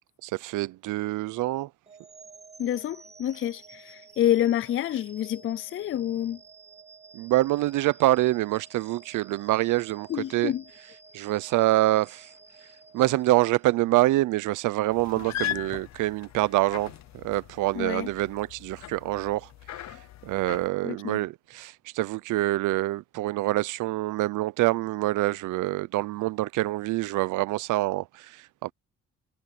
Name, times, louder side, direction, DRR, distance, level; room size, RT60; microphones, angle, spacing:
voice 1, 0.2-1.7 7.1-12.3 12.9-19.5 19.9-20.0 20.2-28.7, right 17 dB, 80° right, 0.6 m, -26 dB
sound 1, 1.9-14.0, right 4 dB, 20° right, 2.1 m, -52 dB
voice 2, 2.6-6.4 10.1-10.6 17.8-18.1 20.8-21.2, left 11 dB, 45° left, 0.4 m, -28 dB
sound 2, 14.9-20.7, left 13 dB, 65° left, 0.8 m, -39 dB
cardioid pair, 90°, 30 cm